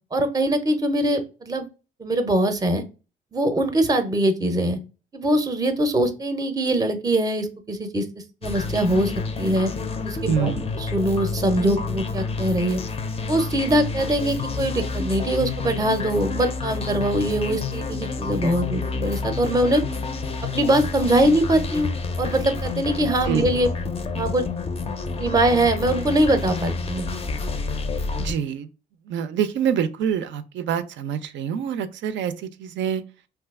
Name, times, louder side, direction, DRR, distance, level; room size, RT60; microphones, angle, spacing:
voice 1, 0.1-1.7 2.0-2.8 3.3-4.8 5.1-8.0 8.4-9.1 9.4-9.7 10.0-10.5 10.8-12.8 13.3-19.8 20.5-21.9 22.2-23.7 24.1-24.5 25.2-27.1, right 1 dB, 20° right, 0.6 m, -22 dB
sound 1, 8.4-28.3, left 4 dB, 30° left, 0.4 m, -29 dB
voice 2, 10.2-10.7 23.2-23.5 28.2-28.7 29.0-33.0, right 8 dB, 70° right, 0.4 m, -26 dB
2.7 x 2.3 x 3.4 m
cardioid pair, 90°, 20 cm